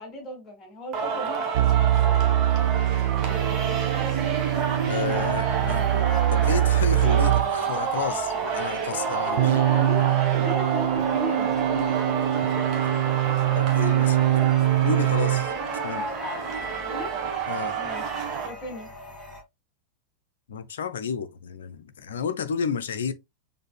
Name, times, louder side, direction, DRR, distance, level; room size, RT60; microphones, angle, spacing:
voice 1, 0.0-1.8 9.2-12.9 16.2-16.4 16.8-17.1 17.8-18.0 18.4-18.9, left 1 dB, 20° left, 2.1 m, -37 dB
Singing, 0.9-18.5, right 6 dB, 35° right, 1.5 m, -29 dB
sound 1, 1.5-7.5 9.4-15.5, right 13 dB, 55° right, 0.6 m, -23 dB
sound 2, 3.3-19.4, left 2 dB, 5° right, 2.5 m, -44 dB
voice 2, 4.9-6.0 6.3-9.5 13.5-14.3 14.8-15.5 15.8-16.1 17.5-17.8 20.5-23.1, left 7 dB, 65° left, 0.6 m, -31 dB
6.6 x 3.4 x 2.3 m
figure-of-eight pair, 90°, 0 cm